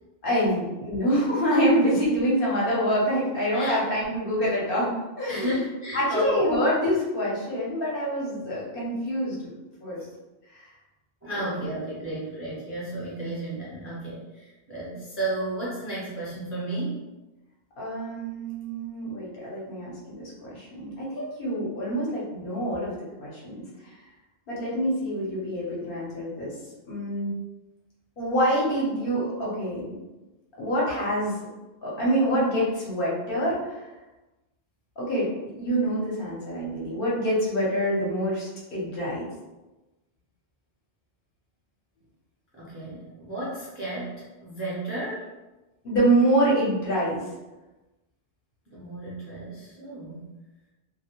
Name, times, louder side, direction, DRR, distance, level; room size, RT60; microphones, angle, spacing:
voice 1, 0.2-5.6 5.9-9.5 9.8-10.0 10.5-10.6 12.0-12.1 17.8-22.9 23.2-23.5 24.5-26.5 26.9-27.3 28.2-30.0 30.6-31.5 31.8-33.8 35.0-35.3 35.6-39.3 45.8-47.2, equal, 60° left, -6 dB, 1.0 m, -26 dB
voice 2, 5.3-6.3 11.2-17.0 42.5-45.3 48.7-50.3, right 1 dB, 15° right, -8 dB, 0.5 m, -33 dB
2.3 x 2.1 x 2.9 m, 1.1 s
omnidirectional pair, 1.0 m